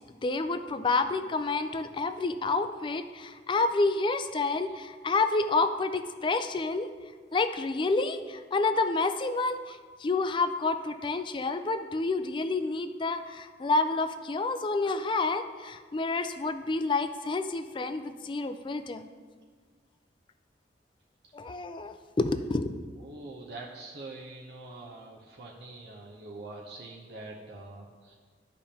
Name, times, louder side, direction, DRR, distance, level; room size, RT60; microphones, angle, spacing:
voice 1, 0.2-6.9 7.3-19.1 21.3-22.8, left 3 dB, 30° left, 10 dB, 0.3 m, -29 dB
voice 2, 23.0-28.2, right 2 dB, 60° right, -2 dB, 0.7 m, -44 dB
12.0 x 5.1 x 2.9 m, 1.5 s
head